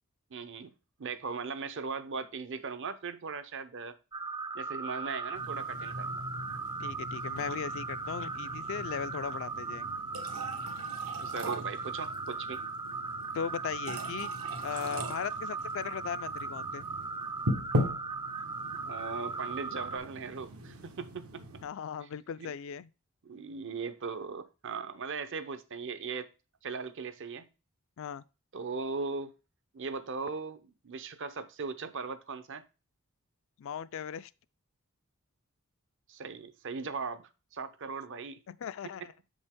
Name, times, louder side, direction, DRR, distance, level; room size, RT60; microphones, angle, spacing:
voice 1, 0.3-0.7 1.0-4.0 4.5-6.2 11.2-12.6 18.8-21.6 22.0-22.1 22.4-22.5 23.2-26.3 26.6-27.5 28.5-29.3 29.7-32.6 36.1-38.4, right 4 dB, 60° right, 0.7 m, -38 dB
sound 1, 4.1-20.0, right 4 dB, 20° right, 0.4 m, -38 dB
sound 2, 5.3-21.7, equal, 80° right, 1.1 m, -40 dB
voice 2, 6.8-10.0 13.3-14.3 14.6-16.8 21.6-22.9 28.0-28.2 33.6-34.3 38.5-39.1, left 7 dB, 65° left, 0.4 m, -38 dB
6.6 x 5.3 x 3.6 m
head